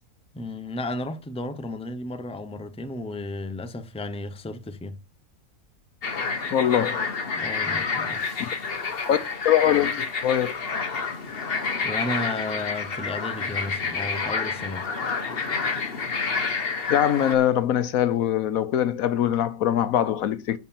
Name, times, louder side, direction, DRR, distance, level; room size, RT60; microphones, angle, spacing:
voice 1, 0.3-4.9 7.4-8.2 11.8-14.9, left 2 dB, 5° left, 0.7 m, -33 dB
sound 1, 6.0-17.3, left 5 dB, 45° left, 1.3 m, -29 dB
voice 2, 6.5-7.1 9.1-9.2 9.4-10.6 16.9-20.6, left 10 dB, 75° left, 1.1 m, -22 dB
10.5 x 4.3 x 7.3 m
omnidirectional pair, 1.5 m